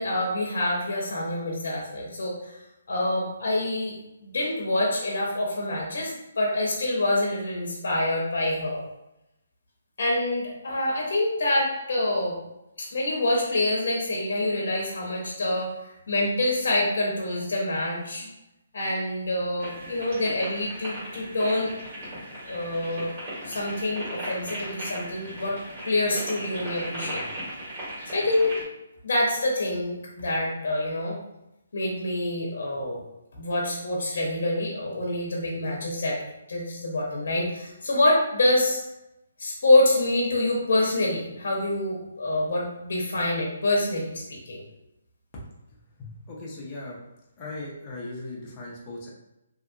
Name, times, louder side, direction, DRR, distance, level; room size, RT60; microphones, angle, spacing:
voice 1, 0.0-2.6 2.9-4.0 4.2-8.8 10.0-12.4 12.8-18.3 18.7-21.7 22.4-23.1 23.4-25.6 25.9-27.2 28.1-28.6 29.0-31.2 31.7-33.0 33.4-36.2 36.5-38.8 39.4-44.6, left 1 dB, 55° left, -1 dB, 0.7 m, -26 dB
sound 1, 19.6-28.6, right 1 dB, 30° right, 1.5 m, -37 dB
voice 2, 46.0-47.0 47.4-49.1, left 2 dB, 20° left, -4 dB, 0.5 m, -38 dB
2.8 x 2.4 x 2.5 m, 0.89 s
hypercardioid pair, 175°, 0 cm